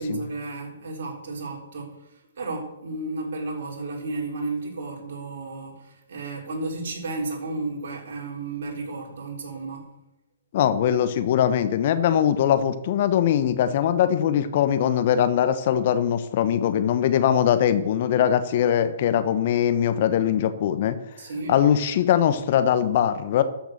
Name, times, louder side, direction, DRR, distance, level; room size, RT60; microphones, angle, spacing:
voice 1, 0.0-9.9 21.2-21.6, right 3 dB, 55° right, 0 dB, 4.0 m, -33 dB
voice 2, 10.5-21.0 21.5-23.4, left 9 dB, 45° left, 11 dB, 1.2 m, -21 dB
13.0 x 6.7 x 6.8 m, 0.92 s
figure-of-eight pair, 130°, 0 cm